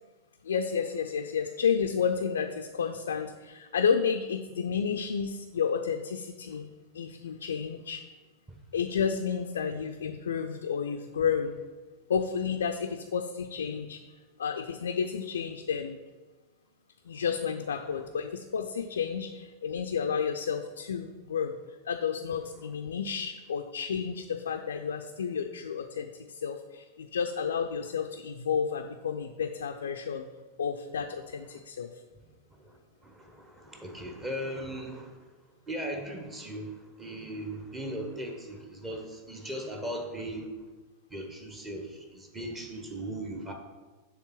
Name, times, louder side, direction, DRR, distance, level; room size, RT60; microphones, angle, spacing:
voice 1, 0.4-6.7 6.9-8.0 8.7-11.6 12.1-14.0 14.4-16.0 17.1-21.5 21.8-30.3 30.6-31.9, left 6 dB, 65° left, 5 dB, 0.4 m, -31 dB
voice 2, 32.6-35.3 35.7-40.5 41.1-43.5, right 1 dB, 15° right, 2 dB, 1.0 m, -38 dB
7.0 x 3.6 x 5.8 m, 1.3 s
figure-of-eight pair, 90°, 0 cm